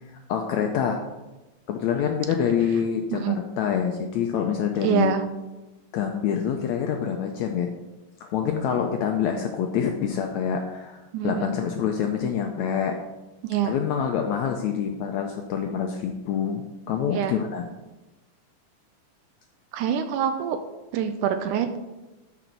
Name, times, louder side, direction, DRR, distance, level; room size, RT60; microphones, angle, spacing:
voice 1, 0.3-1.0 1.7-5.1 5.9-7.7 8.2-13.0 13.6-17.7, left 8 dB, 80° left, 4 dB, 1.6 m, -26 dB
voice 2, 4.8-5.2 11.1-11.5 13.4-13.7 17.1-17.3 19.7-20.6 20.9-21.8, right 9 dB, 80° right, 8 dB, 2.0 m, -25 dB
12.0 x 5.1 x 4.5 m, 1.1 s
omnidirectional pair, 3.9 m